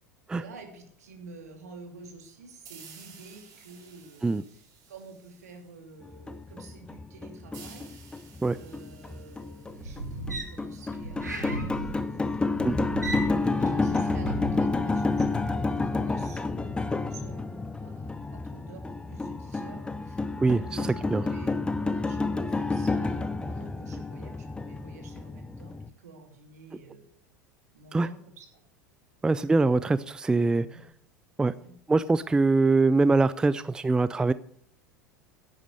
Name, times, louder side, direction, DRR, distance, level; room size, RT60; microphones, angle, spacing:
voice 1, 0.3-7.9 8.5-11.9 13.0-13.2 13.4-20.9 21.2-27.1 27.7-28.6 30.5-30.8 31.6-31.7, right 3 dB, 70° right, 3 dB, 2.7 m, -49 dB
sound 1, 2.7-6.0 7.5-11.0, right 7 dB, 45° right, 3.5 m, -53 dB
sound 2, 6.0-25.9, left 3 dB, 10° left, 0.8 m, -30 dB
sound 3, 9.6-15.4 15.8-16.0, right 1 dB, 85° right, 1.8 m, -37 dB
voice 2, 29.2-30.7 31.4-31.5 31.9-34.3, right 3 dB, 10° right, 16 dB, 0.4 m, -23 dB
11.0 x 8.6 x 6.4 m, 0.63 s
figure-of-eight pair, 80°, 9 cm